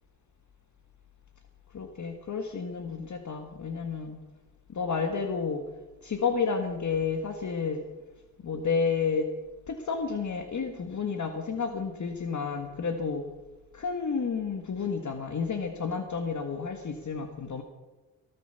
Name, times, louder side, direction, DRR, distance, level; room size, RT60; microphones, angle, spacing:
voice 1, 1.7-4.2 4.7-5.6 6.0-7.8 8.4-9.3 9.7-13.2 13.7-17.6, left 5 dB, 45° left, 6 dB, 1.6 m, -31 dB
17.0 x 9.6 x 6.9 m, 1.2 s
cardioid pair, 70°, 40 cm